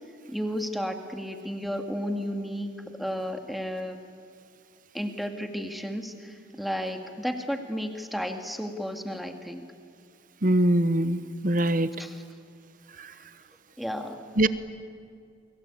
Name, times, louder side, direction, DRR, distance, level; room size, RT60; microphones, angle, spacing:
voice 1, 0.3-2.7 3.0-4.0 4.9-9.7 12.0-12.2 13.8-14.2, equal, ahead, 4 dB, 2.1 m, -33 dB
voice 2, 10.4-11.9 13.0-13.1 14.4-14.5, right 1 dB, 45° right, 13 dB, 1.0 m, -23 dB
29.5 x 23.5 x 8.5 m, 2.3 s
head